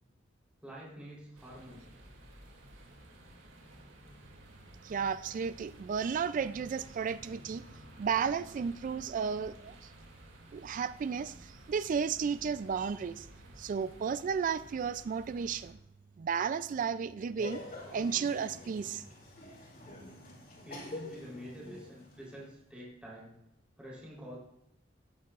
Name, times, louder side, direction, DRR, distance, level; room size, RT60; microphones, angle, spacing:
voice 1, 0.6-1.8 20.6-23.3 23.8-24.4, equal, 5° right, -6 dB, 3.5 m, -47 dB
sound 1, 1.3-15.7, right 1 dB, 90° right, 2.4 m, -54 dB
voice 2, 4.8-7.6 8.0-9.7 10.5-13.3 13.6-15.8 16.2-17.6 17.9-19.0, right 6 dB, 45° right, 14 dB, 0.3 m, -33 dB
Laughter, 17.4-22.5, left 2 dB, 50° left, 3.6 m, -47 dB
18.0 x 9.2 x 2.4 m, 0.79 s
head